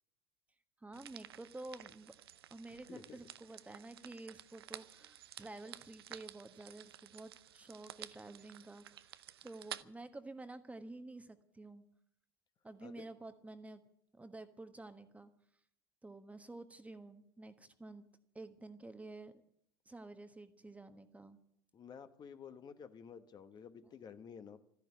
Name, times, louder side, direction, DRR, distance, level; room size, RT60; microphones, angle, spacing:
voice 1, 0.8-2.2 2.5-9.1 9.4-11.8 12.6-13.8 14.1-15.3 16.0-18.0 18.3-19.3 19.8-21.4, right 2 dB, 10° right, 10 dB, 1.4 m, -50 dB
sound 1, 0.9-9.8, right 11 dB, 75° right, 0.6 m, -53 dB
voice 2, 2.7-3.2 12.8-13.1 21.7-24.6, left 7 dB, 35° left, 9 dB, 1.2 m, -52 dB
14.0 x 10.5 x 9.9 m, 0.72 s
figure-of-eight pair, 75°, 13 cm